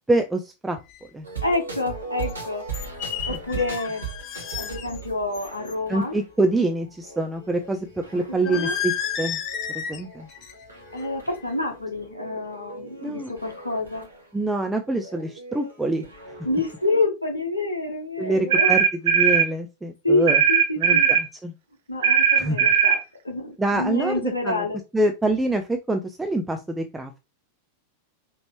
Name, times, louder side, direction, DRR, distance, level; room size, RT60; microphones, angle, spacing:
voice 1, 0.1-0.8 1.1-1.3 3.3-3.4 5.9-7.9 8.1-8.9 9.2-9.4 9.7-10.3 13.0-13.3 14.3-16.4 18.2-20.4 20.8-21.5 22.4-22.6 23.6-24.6 24.9-27.2, right 2 dB, 10° right, 5 dB, 0.5 m, -25 dB
sound 1, 0.9-1.0 2.2-2.3 2.7-5.0 5.3-5.7 8.4-10.0 10.3-10.6 11.0-11.3, left 8 dB, 35° left, 0.9 m, -32 dB
sound 2, 1.2-17.0, right 4 dB, 75° right, 1.6 m, -39 dB
voice 2, 1.4-2.9 3.3-4.1 4.6-6.2 8.3-8.8 10.9-14.1 16.4-18.7 20.0-21.2 21.9-23.0 23.2-24.8, left 2 dB, 80° left, 3 dB, 1.0 m, -27 dB
sound 3, 18.5-19.5 20.3-21.3 22.0-23.0, right 7 dB, 55° right, 0.5 m, -18 dB
5.1 x 3.0 x 3.0 m, 0.26 s
figure-of-eight pair, 90°, 0 cm